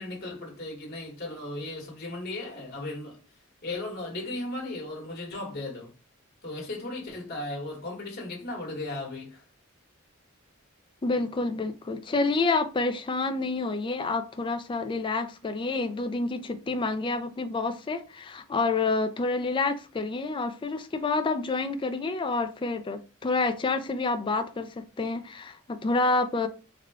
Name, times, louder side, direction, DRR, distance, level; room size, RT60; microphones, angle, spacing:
voice 1, 0.0-3.2 3.6-5.9 6.4-9.4, left 2 dB, 50° left, 1.3 m, -36 dB
voice 2, 11.0-26.5, left 3 dB, 25° left, 0.3 m, -28 dB
3.6 x 2.2 x 3.4 m
head